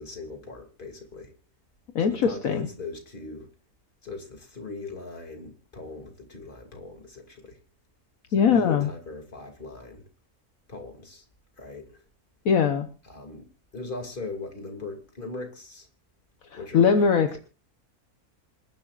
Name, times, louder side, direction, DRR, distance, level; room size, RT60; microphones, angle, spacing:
voice 1, 0.0-1.3 2.1-3.5 4.0-7.6 8.4-10.0 10.7-11.3 11.6-12.0 13.0-13.5 13.7-15.9 16.6-17.1, left 3 dB, 35° left, 3 dB, 2.8 m, -39 dB
voice 2, 1.9-2.7 8.3-8.9 12.4-12.9 16.5-17.4, left 6 dB, 70° left, 7 dB, 1.4 m, -21 dB
27.0 x 10.5 x 2.5 m, 0.35 s
omnidirectional pair, 1.5 m